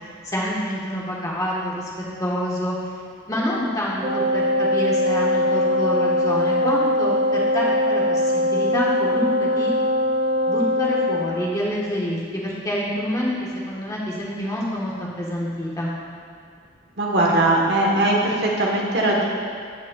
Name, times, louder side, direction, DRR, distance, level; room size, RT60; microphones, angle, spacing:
voice 1, 0.2-1.9 2.2-2.8 3.3-9.7 10.5-15.9, equal, 20° left, -5 dB, 1.2 m, -27 dB
Wind instrument woodwind instrument, 4.0-11.3, left 1 dB, 25° right, 0.5 m, -21 dB
voice 2, 17.0-19.2, right 2 dB, 60° right, -2 dB, 1.2 m, -20 dB
14.5 x 5.3 x 2.3 m, 2.3 s
head